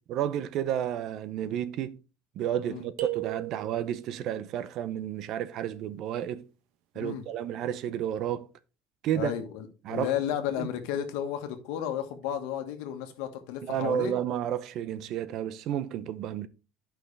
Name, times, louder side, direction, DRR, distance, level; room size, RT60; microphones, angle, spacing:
voice 1, 0.1-2.0 2.3-6.5 6.9-8.5 9.0-9.3 9.8-10.1 10.6-10.7 13.6-16.5, right 10 dB, 45° right, 0.6 m, -31 dB
sound 1, 3.0-4.1, right 18 dB, 65° right, 0.9 m, -35 dB
voice 2, 9.1-14.1, left 10 dB, 90° left, 1.4 m, -33 dB
11.0 x 5.8 x 3.3 m
cardioid pair, 170°, 0 cm